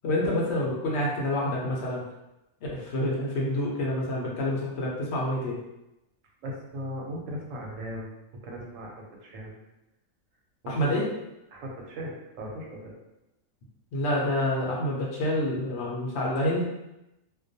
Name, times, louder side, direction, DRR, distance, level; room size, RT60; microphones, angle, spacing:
voice 1, 0.0-2.0 2.7-5.6 10.7-11.1 13.9-16.6, left 1 dB, 65° left, -3 dB, 0.8 m, -27 dB
voice 2, 6.4-8.1 8.4-8.9 9.2-9.6 10.6-11.0 11.5-12.9, equal, 90° right, -1 dB, 1.0 m, -38 dB
2.3 x 2.2 x 2.6 m, 0.94 s
omnidirectional pair, 1.3 m